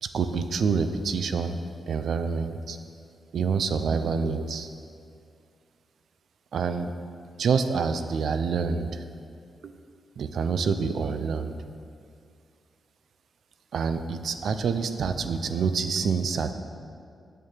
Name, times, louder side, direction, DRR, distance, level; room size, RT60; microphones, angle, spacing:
voice 1, 0.0-1.6 1.9-2.8 3.3-4.7 6.5-6.9 7.4-9.0 9.6-9.7 10.2-11.6 13.7-16.5, right 5 dB, 75° right, 9 dB, 0.6 m, -27 dB
8.5 x 6.7 x 7.3 m, 2.3 s
wide cardioid pair, 115°, 0 cm